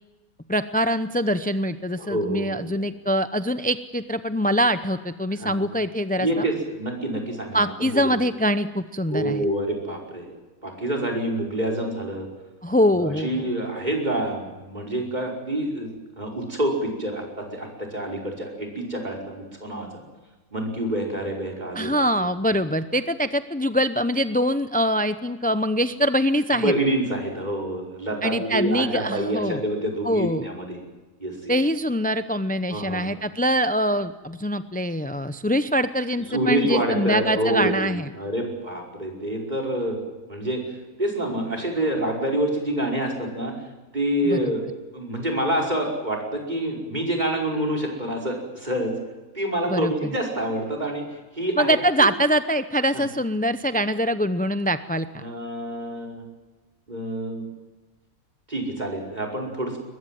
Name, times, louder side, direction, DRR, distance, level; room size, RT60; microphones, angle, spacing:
voice 1, 0.5-6.3 7.5-9.4 12.6-13.5 21.8-26.7 28.2-29.6 30.0-30.5 31.5-38.1 44.2-44.4 49.6-49.9 51.6-55.2, equal, 10° left, 11 dB, 0.4 m, -23 dB
voice 2, 2.0-2.7 5.4-5.6 6.2-8.1 9.1-10.3 10.6-12.3 12.9-15.9 16.2-19.9 20.5-22.0 26.5-30.8 31.2-31.5 32.7-33.1 36.3-40.0 40.3-40.6 41.0-43.5 43.9-44.6 44.9-48.9 49.3-51.8 52.9-53.0 55.2-56.2 56.9-57.5 58.5-59.8, right 1 dB, 30° right, 3 dB, 5.5 m, -27 dB
22.0 x 21.5 x 9.2 m, 1.2 s
omnidirectional pair, 1.5 m